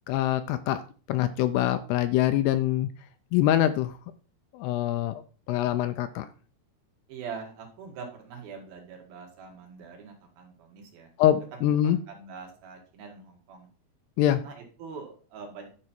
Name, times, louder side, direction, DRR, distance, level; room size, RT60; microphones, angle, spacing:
voice 1, 0.1-0.8 1.1-2.9 3.3-3.9 4.5-5.1 5.5-6.3 11.2-12.0 14.2-14.4, left 12 dB, 80° left, 10 dB, 2.5 m, -24 dB
voice 2, 7.1-11.1 11.5-13.7 14.3-15.7, right 5 dB, 65° right, 2 dB, 3.3 m, -43 dB
11.0 x 5.3 x 4.3 m, 0.37 s
omnidirectional pair, 5.0 m